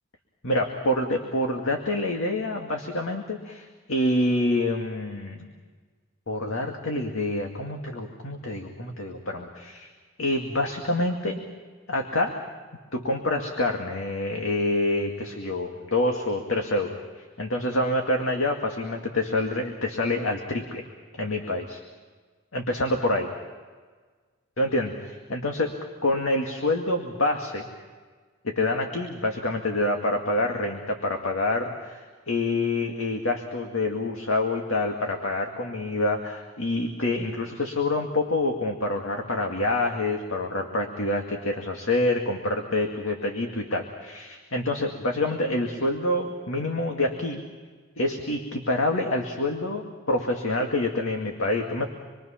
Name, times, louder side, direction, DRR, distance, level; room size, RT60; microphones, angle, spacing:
voice 1, 0.4-5.5 6.3-9.9 10.2-11.4 11.9-12.4 12.9-17.0 17.4-20.8 21.2-21.8 22.5-23.3 24.6-25.8 26.0-27.7 28.4-47.4 48.0-51.9, left 2 dB, 70° left, 2 dB, 2.2 m, -27 dB
27.5 x 23.0 x 5.8 m, 1.5 s
head